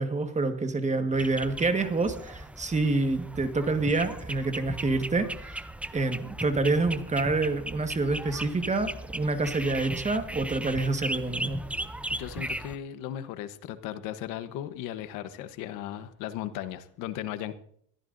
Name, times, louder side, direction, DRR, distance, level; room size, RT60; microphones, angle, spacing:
voice 1, 0.0-5.5 5.9-11.6, right 3 dB, 20° right, 7 dB, 1.5 m, -27 dB
sound 1, 1.1-12.8, right 1 dB, 5° right, 0.6 m, -37 dB
voice 2, 12.1-17.5, left 11 dB, 90° left, 11 dB, 1.1 m, -36 dB
21.5 x 14.5 x 2.6 m, 0.65 s
cardioid pair, 110°, 31 cm